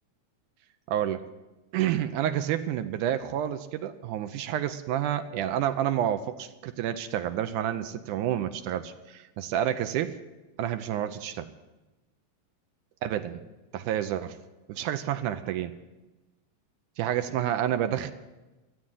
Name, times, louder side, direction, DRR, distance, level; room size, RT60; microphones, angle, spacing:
voice 1, 0.9-1.3 1.7-10.2 10.6-11.5 13.0-13.4 13.7-14.4 14.7-15.7 17.0-18.1, right 11 dB, 75° right, 9 dB, 2.0 m, -29 dB
14.0 x 8.7 x 9.5 m, 1.1 s
omnidirectional pair, 4.1 m